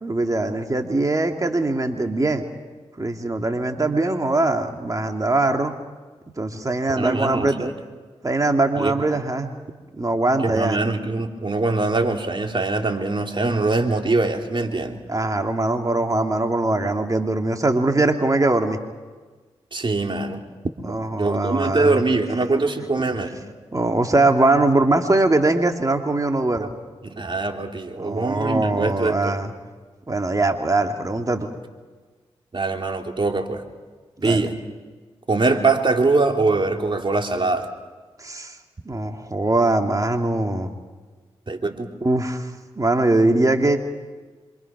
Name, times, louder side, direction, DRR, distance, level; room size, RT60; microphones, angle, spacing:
voice 1, 0.0-2.4 3.0-5.7 6.4-7.7 8.2-9.5 10.0-10.8 15.1-18.8 20.8-22.0 23.0-23.1 23.7-26.7 28.0-29.5 30.1-31.5 34.2-34.4 38.2-38.6 38.9-40.7 42.0-42.5 42.8-43.8, right 2 dB, 30° right, 4 dB, 2.5 m, -21 dB
voice 2, 6.9-7.7 8.8-8.9 10.4-15.0 19.7-20.4 21.2-23.4 27.1-29.3 32.5-33.6 34.2-34.6 35.3-37.7 41.5-41.9, right 3 dB, 45° right, 3 dB, 3.3 m, -23 dB
27.5 x 25.5 x 6.1 m, 1.4 s
cardioid pair, 45°, 12 cm